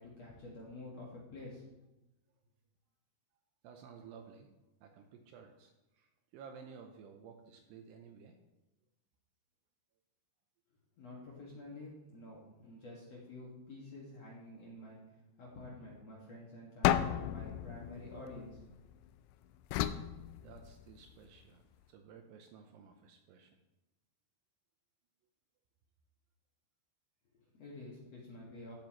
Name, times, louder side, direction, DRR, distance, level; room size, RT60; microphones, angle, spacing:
voice 1, 0.0-1.6 11.0-15.0 15.4-18.7 27.3-28.7, left 2 dB, 50° left, -5 dB, 2.1 m, -49 dB
voice 2, 3.6-4.5 4.8-8.4 20.4-23.5, right 6 dB, 80° right, 4 dB, 2.6 m, -55 dB
sound 1, 16.8-19.0 19.7-21.1, left 12 dB, 90° left, 2.4 m, -34 dB
15.0 x 8.4 x 3.1 m, 0.96 s
omnidirectional pair, 5.3 m